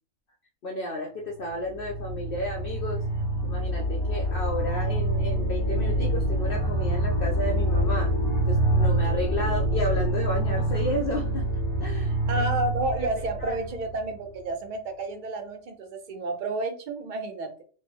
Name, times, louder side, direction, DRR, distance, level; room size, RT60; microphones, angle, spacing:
voice 1, 0.6-3.0 3.4-8.1 8.5-11.5 11.8-12.4 13.0-13.1 13.4-13.6, left 1 dB, 65° left, 1 dB, 0.6 m, -32 dB
sound 1, 1.5-14.3, right 1 dB, 75° right, 1.2 m, -26 dB
voice 2, 12.3-17.6, right 2 dB, 55° right, 6 dB, 0.6 m, -30 dB
3.2 x 2.0 x 3.4 m, 0.40 s
omnidirectional pair, 1.4 m